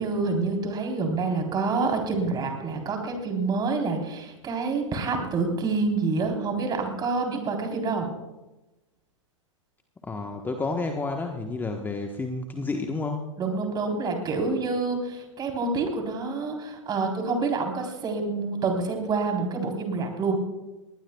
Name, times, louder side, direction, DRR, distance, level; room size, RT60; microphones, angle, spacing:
voice 1, 0.0-8.1 13.4-20.4, right 3 dB, 25° right, 2 dB, 3.8 m, -27 dB
voice 2, 10.0-13.2, left 3 dB, 10° left, 3 dB, 1.2 m, -30 dB
20.5 x 19.5 x 2.3 m, 1.0 s
hypercardioid pair, 110°, 17 cm